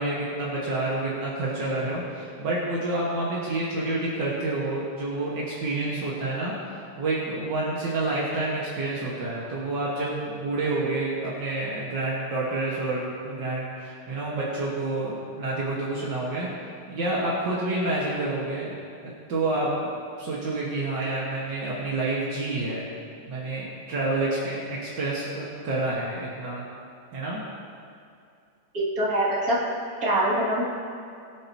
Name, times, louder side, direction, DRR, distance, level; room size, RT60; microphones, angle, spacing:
voice 1, 0.0-16.5 16.9-18.8 19.0-19.9 20.2-22.9 23.3-26.6 27.1-27.4, right 2 dB, 75° right, -6 dB, 2.2 m, -28 dB
voice 2, 28.7-29.6 30.0-30.6, right 1 dB, 50° right, -7 dB, 2.9 m, -24 dB
21.5 x 7.7 x 2.9 m, 2.4 s
omnidirectional pair, 1.9 m